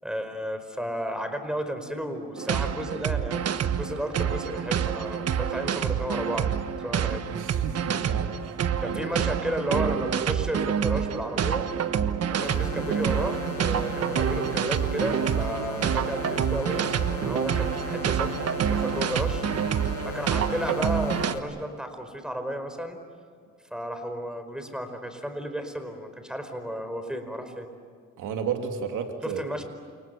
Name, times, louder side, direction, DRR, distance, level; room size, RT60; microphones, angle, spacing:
voice 1, 0.0-6.5 6.8-7.2 8.8-11.7 12.3-19.4 20.0-23.0 23.7-27.7 29.2-29.6, equal, ahead, 7 dB, 4.8 m, -33 dB
sound 1, 2.4-21.3, right 8 dB, 55° right, 1.3 m, -27 dB
voice 2, 7.3-8.6 8.8-9.0 28.2-29.4, right 6 dB, 85° right, 4 dB, 2.8 m, -33 dB
sound 2, 12.4-21.4, left 5 dB, 75° left, 6.5 m, -38 dB
29.0 x 28.5 x 7.0 m, 2.1 s
cardioid pair, 90°, 30 cm